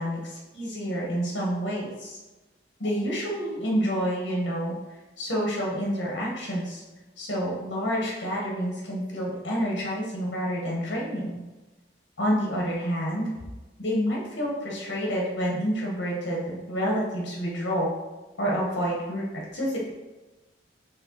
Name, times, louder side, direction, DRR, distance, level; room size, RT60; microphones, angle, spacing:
voice 1, 0.0-2.2 2.8-4.8 5.2-6.8 7.2-11.4 12.2-13.3 13.8-17.9 18.4-19.3 19.5-19.9, equal, 70° left, -3 dB, 1.7 m, -28 dB
6.7 x 3.4 x 4.8 m, 1.1 s
head